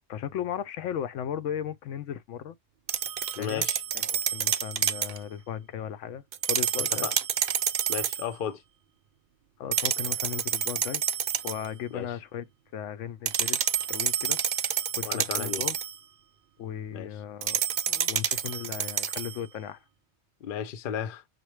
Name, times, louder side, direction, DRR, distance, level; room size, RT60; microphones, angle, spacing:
voice 1, 0.1-2.6 3.4-3.7 3.9-7.1 9.6-11.0 11.4-12.5 12.7-15.8 16.6-19.8, left 9 dB, 85° left, 0.9 m, -36 dB
sound 1, 2.9-5.2 6.3-8.3 9.7-11.7 13.3-16.0 17.4-19.4, right 9 dB, 60° right, 0.6 m, -28 dB
voice 2, 3.4-3.8 7.0-7.2 7.9-8.6 11.9-12.1 15.0-15.6 16.9-17.1 20.4-21.2, left 8 dB, 55° left, 0.7 m, -34 dB
5.9 x 2.2 x 3.1 m
omnidirectional pair, 1.2 m